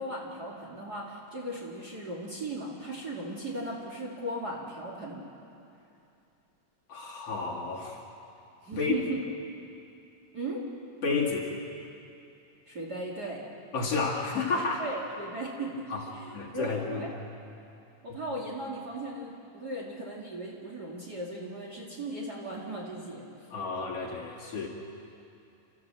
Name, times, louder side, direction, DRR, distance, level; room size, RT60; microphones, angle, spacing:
voice 1, 0.0-5.2 8.6-9.2 10.3-10.6 12.7-13.4 14.8-17.2 18.0-23.3, right 2 dB, 35° right, -3 dB, 2.4 m, -37 dB
voice 2, 6.9-8.0 8.8-8.9 11.0-11.5 13.7-14.9 15.9-17.1 23.5-24.7, left 4 dB, 50° left, -3 dB, 3.2 m, -31 dB
29.5 x 14.0 x 7.6 m, 2.7 s
omnidirectional pair, 3.7 m